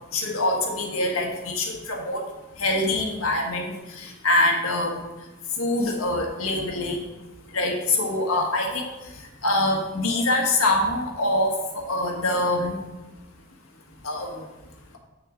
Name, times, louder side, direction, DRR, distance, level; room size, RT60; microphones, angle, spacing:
voice 1, 0.1-2.2 2.6-5.0 5.6-7.0 7.5-8.9 9.4-11.5 11.9-12.8 14.0-14.4, left 2 dB, 85° left, 1 dB, 1.5 m, -24 dB
7.7 x 6.6 x 3.8 m, 1.1 s
head